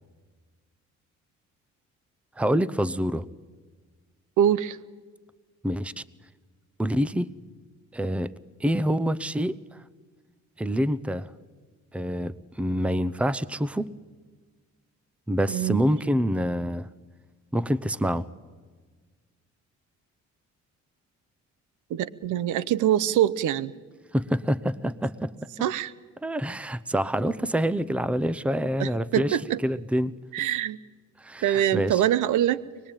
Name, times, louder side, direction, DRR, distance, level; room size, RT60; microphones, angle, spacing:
voice 1, 2.4-3.2 5.6-6.0 6.8-7.3 7.9-8.3 8.6-9.6 10.6-11.3 11.9-13.9 15.3-16.9 17.5-18.3 24.1-25.3 26.2-29.4 29.6-30.1 31.2-32.0, equal, 5° right, 18 dB, 0.7 m, -26 dB
voice 2, 4.4-4.8 15.5-15.8 21.9-23.7 25.6-25.9 28.8-29.6 30.3-30.8 31.4-32.6, right 11 dB, 80° right, 18 dB, 0.8 m, -24 dB
24.5 x 20.5 x 8.9 m, 1.4 s
cardioid pair, 90°, 30 cm